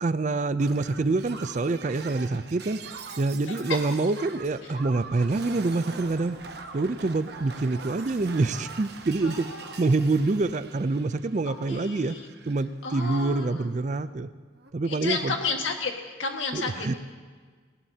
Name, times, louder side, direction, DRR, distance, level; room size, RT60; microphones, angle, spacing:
voice 1, 0.0-2.8 3.2-6.4 6.7-9.5 9.8-12.2 12.5-14.3 14.7-15.3 16.5-16.9, right 3 dB, 40° right, 14 dB, 0.4 m, -26 dB
Shatter, 0.6-12.6 12.9-13.5 14.6-14.7, right 4 dB, 60° right, 0.9 m, -43 dB
voice 2, 9.2-10.2 11.5-12.3 12.8-13.7 14.9-16.9, left 4 dB, 90° left, 2 dB, 1.7 m, -32 dB
19.5 x 18.0 x 2.8 m, 1.5 s
head